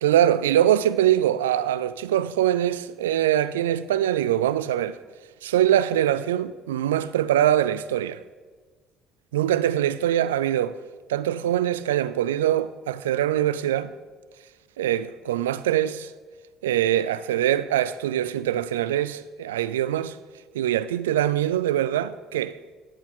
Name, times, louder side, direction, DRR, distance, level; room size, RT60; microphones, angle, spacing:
voice 1, 0.0-5.0 5.4-8.2 9.3-10.8 11.1-13.9 14.8-16.1 16.6-20.2 20.5-22.6, right 11 dB, 80° right, 0.3 m, -23 dB
10.5 x 8.0 x 4.6 m
hypercardioid pair, 55°, 0 cm